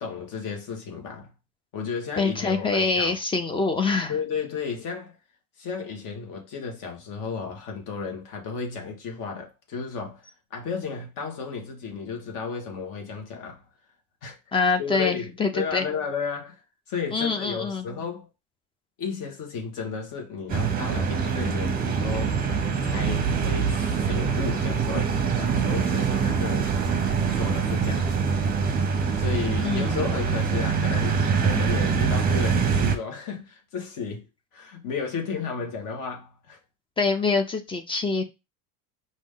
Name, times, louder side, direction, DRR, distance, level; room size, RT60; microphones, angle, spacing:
voice 1, 0.0-1.3 1.7-3.2 4.1-5.2 5.6-13.6 14.2-14.4 14.8-16.6 16.9-18.3 19.0-26.8 27.3-28.3 29.1-34.3 34.5-36.6, left 5 dB, 50° left, 1.6 m, -33 dB
voice 2, 2.2-4.2 14.5-15.8 17.1-17.9 29.6-30.0 37.0-38.2, left 4 dB, 15° left, 0.4 m, -25 dB
sound 1, 20.5-33.0, right 6 dB, 20° right, 0.7 m, -24 dB
5.0 x 2.7 x 3.7 m
cardioid pair, 160°, 40 cm